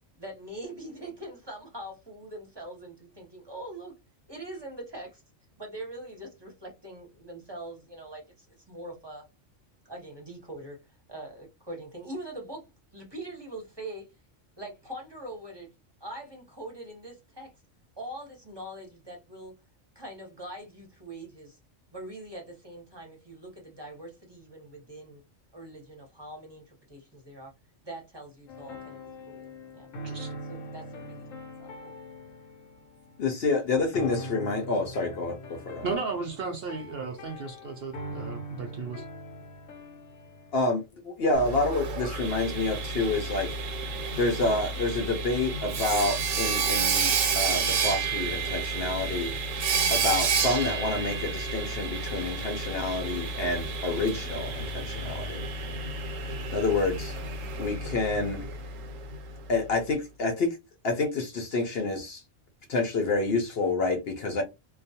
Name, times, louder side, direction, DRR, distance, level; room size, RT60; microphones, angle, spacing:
voice 1, 0.2-4.0 4.3-5.2 5.6-9.2 9.8-10.8 11.1-12.7 12.9-14.1 14.6-15.7 16.0-17.5 18.0-19.5 19.9-21.6 21.9-25.2 25.5-27.5 27.8-29.9 30.5-31.3 31.6-31.9, right 1 dB, 25° right, 0.8 m, -42 dB
sound 1, 28.5-40.9, equal, 85° left, 1.0 m, -42 dB
voice 2, 30.0-30.4 35.8-39.0, right 4 dB, 60° right, 0.7 m, -35 dB
voice 3, 33.2-35.9 40.5-43.5 44.2-49.3 49.9-55.4 56.5-57.2 57.6-58.4 59.5-60.6 60.8-62.2 62.7-64.4, left 3 dB, 60° left, 0.7 m, -28 dB
Sawing, 41.3-59.2, right 5 dB, 80° right, 1.0 m, -30 dB
2.3 x 2.3 x 2.7 m
omnidirectional pair, 1.3 m